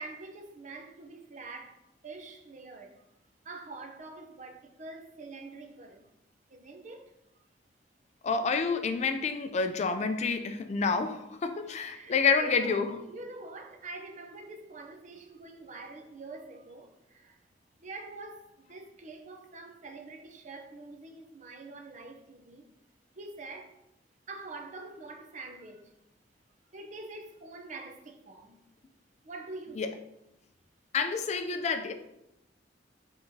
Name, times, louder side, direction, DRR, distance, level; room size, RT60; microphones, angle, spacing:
voice 1, 0.0-1.8 2.0-3.0 3.4-6.1 6.5-7.1 11.8-17.4 17.8-22.7 23.2-23.7 24.3-25.9 26.7-28.6 29.2-30.0, right 2 dB, 45° right, 0.5 m, -45 dB
voice 2, 8.2-13.0 29.8-29.9 30.9-31.9, left 5 dB, 40° left, 0.3 m, -28 dB
5.4 x 3.5 x 2.7 m
head